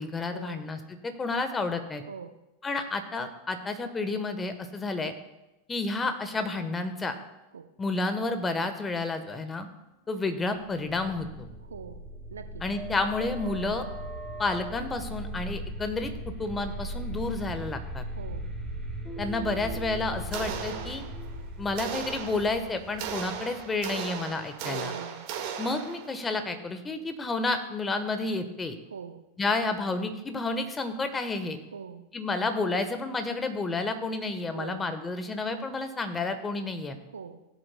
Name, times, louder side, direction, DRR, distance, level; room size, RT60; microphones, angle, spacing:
voice 1, 0.0-2.0 2.6-5.1 5.7-7.1 7.8-9.7 10.1-11.5 12.6-13.8 14.4-16.1 16.4-18.0 19.2-21.0 21.6-24.9 25.6-28.8 29.4-31.6 32.1-37.0, left 3 dB, 20° left, 8 dB, 1.1 m, -30 dB
sound 1, 10.7-24.4, right 1 dB, 5° right, 2.3 m, -38 dB
voice 2, 11.7-12.0 12.3-12.6 18.2-18.5 24.6-25.3 28.9-29.2 31.7-32.1 34.5-34.9 37.1-37.4, right 6 dB, 80° right, 9 dB, 0.6 m, -42 dB
sound 2, 20.3-21.4 21.8-26.3, right 8 dB, 55° right, 1.7 m, -37 dB
17.5 x 7.9 x 2.2 m, 0.99 s
hypercardioid pair, 90°, 0 cm